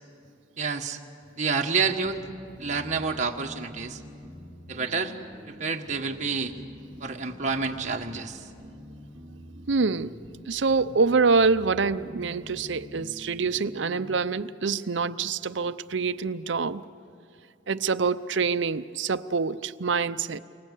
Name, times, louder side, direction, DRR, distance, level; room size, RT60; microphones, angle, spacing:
voice 1, 0.6-1.0 1.4-2.2 2.6-4.0 4.7-5.1 5.5-6.5 7.0-8.5, right 5 dB, 40° right, 2 dB, 1.6 m, -28 dB
sound 1, 1.8-14.0, equal, 10° right, 4.4 m, -46 dB
voice 2, 9.7-10.2 10.5-16.8 17.7-20.4, right 4 dB, 70° right, 11 dB, 0.7 m, -26 dB
29.0 x 24.5 x 8.3 m, 2.5 s
head